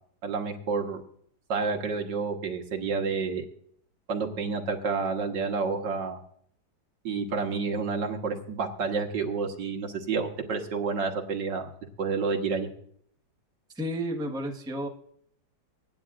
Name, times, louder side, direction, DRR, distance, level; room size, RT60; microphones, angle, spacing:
voice 1, 0.2-1.0 1.5-3.4 4.1-6.2 7.0-11.7 12.0-12.7, right 4 dB, 65° right, 3 dB, 2.0 m, -29 dB
voice 2, 13.7-14.9, equal, 5° right, 1 dB, 1.2 m, -31 dB
23.5 x 9.6 x 2.5 m, 0.65 s
omnidirectional pair, 2.1 m